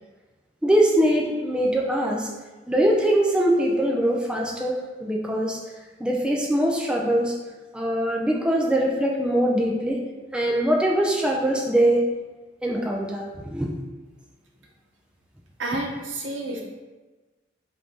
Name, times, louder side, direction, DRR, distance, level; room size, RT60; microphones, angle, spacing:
voice 1, 0.6-2.3 2.7-5.6 6.0-7.3 7.7-10.0 10.3-12.1 12.6-13.7, right 1 dB, 5° right, -2 dB, 0.3 m, -22 dB
voice 2, 15.6-16.6, right 2 dB, 85° right, 0 dB, 0.7 m, -29 dB
4.5 x 2.5 x 3.5 m, 1.2 s
head